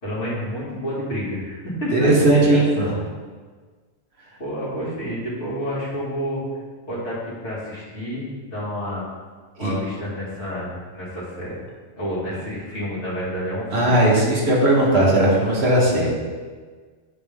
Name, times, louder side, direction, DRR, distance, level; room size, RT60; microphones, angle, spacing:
voice 1, 0.0-3.0 4.4-6.4 6.9-9.0 9.6-11.6 12.0-14.0, equal, 65° left, -10 dB, 2.4 m, -29 dB
voice 2, 1.9-2.9 9.6-9.7 13.7-16.1, right 1 dB, 60° right, -4 dB, 1.6 m, -17 dB
9.8 x 3.6 x 3.6 m, 1.5 s
omnidirectional pair, 1.3 m